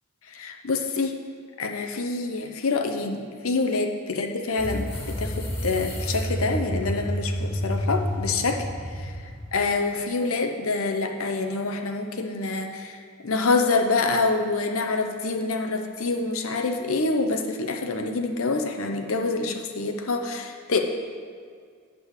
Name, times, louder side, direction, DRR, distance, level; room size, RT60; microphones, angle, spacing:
voice 1, 0.3-1.1 1.6-8.6 9.0-9.1 9.5-13.0 13.2-20.8, left 3 dB, 70° left, 4 dB, 0.8 m, -26 dB
sound 1, 4.6-9.5, equal, 50° left, 1.7 m, -30 dB
8.2 x 5.3 x 6.5 m, 2.1 s
head